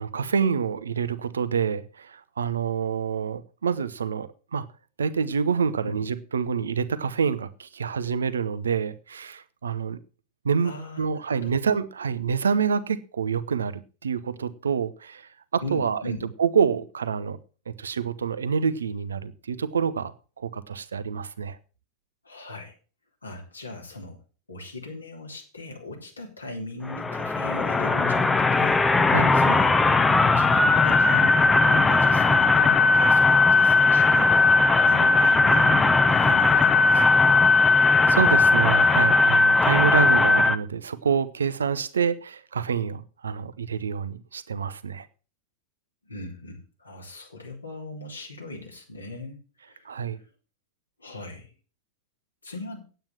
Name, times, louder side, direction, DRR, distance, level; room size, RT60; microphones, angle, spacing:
voice 1, 0.0-4.7 5.0-10.0 10.4-10.7 11.0-16.0 16.4-17.4 17.7-21.6 29.1-29.3 38.1-45.1 49.8-50.2, right 6 dB, 70° right, 15 dB, 0.8 m, -27 dB
voice 2, 10.6-11.5 15.6-16.2 22.2-22.7 23.2-24.2 24.5-29.8 30.3-34.3 34.8-35.7 36.1-37.5 46.0-49.4 49.6-50.0 51.0-51.5 52.4-52.8, left 2 dB, 80° left, 0 dB, 3.4 m, -38 dB
sound 1, 26.9-40.6, left 3 dB, 10° left, 0.8 m, -18 dB
9.1 x 9.0 x 6.0 m, 0.36 s
figure-of-eight pair, 90°, 0 cm